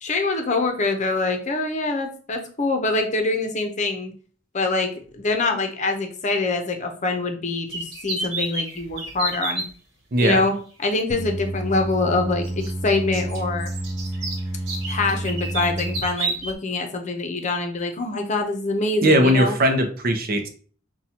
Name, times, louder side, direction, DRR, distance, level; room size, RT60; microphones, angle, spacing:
voice 1, 0.0-4.1 4.5-9.6 10.2-10.5 10.8-13.7 14.9-19.6, left 3 dB, 40° left, 5 dB, 0.7 m, -24 dB
sound 1, 7.7-9.7 11.1-11.2 12.4-16.5, right 2 dB, 65° right, 1.2 m, -30 dB
sound 2, 11.1-16.0, right 1 dB, 5° right, 0.5 m, -29 dB
voice 2, 19.0-20.5, equal, 50° right, 6 dB, 0.7 m, -19 dB
5.8 x 2.3 x 2.8 m, 0.43 s
head